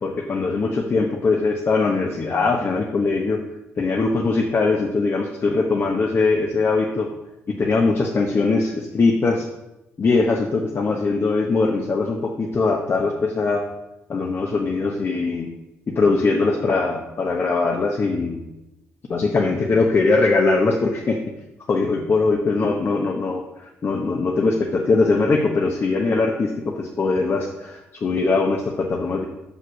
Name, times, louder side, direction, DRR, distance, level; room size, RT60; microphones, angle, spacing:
voice 1, 0.0-3.4 3.8-7.1 7.5-9.5 10.0-13.6 14.1-15.5 15.9-18.4 19.1-21.2 21.7-29.2, left 3 dB, 45° left, 0 dB, 1.0 m, -21 dB
6.1 x 5.6 x 6.0 m, 0.92 s
cardioid pair, 80°, 5 cm